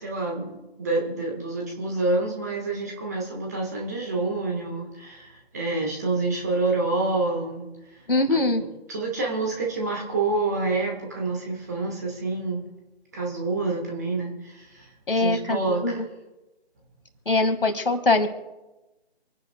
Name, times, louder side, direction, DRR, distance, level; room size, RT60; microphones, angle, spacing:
voice 1, 0.0-7.7 8.3-12.6 13.1-16.0, right 3 dB, 15° right, -1 dB, 1.3 m, -28 dB
voice 2, 8.1-8.6 15.1-16.0 17.3-18.3, left 2 dB, 55° left, 9 dB, 1.7 m, -22 dB
27.0 x 10.5 x 2.2 m, 1.1 s
figure-of-eight pair, 160°, 33 cm